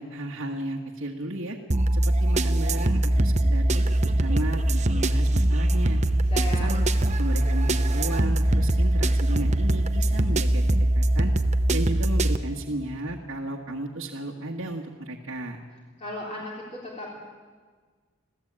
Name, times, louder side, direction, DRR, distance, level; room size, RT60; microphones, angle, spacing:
voice 1, 0.0-1.6 1.9-6.0 6.6-6.9 7.2-11.3 11.7-15.6, right 1 dB, 70° right, -2 dB, 1.8 m, -34 dB
sound 1, 1.7-12.4, right 1 dB, 35° right, 0.9 m, -22 dB
voice 2, 6.0-6.7 16.0-17.2, left 1 dB, 30° left, -4 dB, 3.8 m, -36 dB
25.5 x 16.0 x 8.9 m, 1.5 s
head